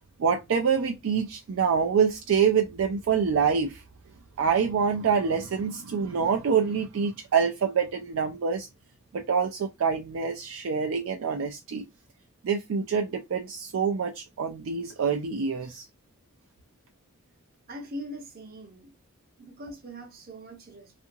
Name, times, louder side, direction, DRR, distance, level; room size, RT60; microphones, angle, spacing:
voice 1, 0.2-3.8 4.4-8.7 9.1-11.9 12.4-15.8, right 6 dB, 70° right, 0.4 m, -26 dB
voice 2, 17.7-18.9 19.4-21.0, equal, 45° right, 0.8 m, -41 dB
2.7 x 2.5 x 2.6 m
head